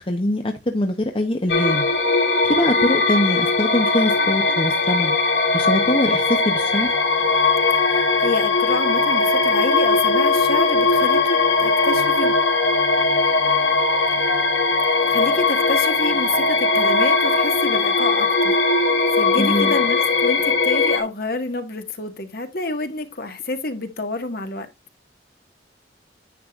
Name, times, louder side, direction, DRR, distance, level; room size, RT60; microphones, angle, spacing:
voice 1, 0.0-1.8 2.5-5.2 5.5-6.9 19.4-19.7, left 1 dB, 30° left, 0.9 m, -23 dB
sound 1, 1.5-21.0, left 3 dB, 90° left, 1.9 m, -19 dB
voice 2, 7.9-12.4 14.1-14.2 15.1-18.6 19.2-24.7, left 2 dB, 55° left, 1.6 m, -28 dB
10.0 x 7.7 x 2.4 m
head